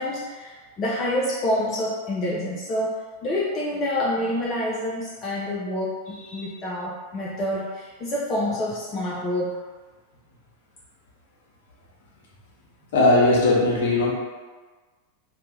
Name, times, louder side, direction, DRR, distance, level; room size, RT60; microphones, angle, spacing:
voice 1, 0.0-9.6, left 1 dB, 30° left, -5 dB, 0.4 m, -27 dB
voice 2, 6.1-6.5 12.9-14.1, left 2 dB, 55° left, -4 dB, 0.7 m, -19 dB
2.4 x 2.2 x 3.0 m, 1.4 s
figure-of-eight pair, 90°, 0 cm